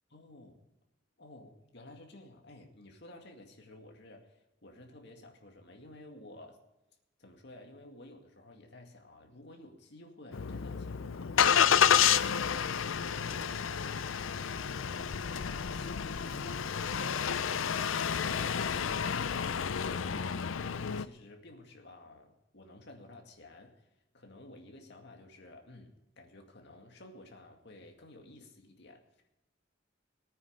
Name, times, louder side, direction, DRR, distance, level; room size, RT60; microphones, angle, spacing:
voice 1, 0.1-0.7 1.2-6.6 7.2-13.9 14.3-29.0, left 2 dB, 55° left, 3 dB, 2.2 m, -53 dB
Engine starting, 10.3-21.0, left 8 dB, 75° left, 0.5 m, -30 dB
19.0 x 9.3 x 5.3 m, 0.94 s
head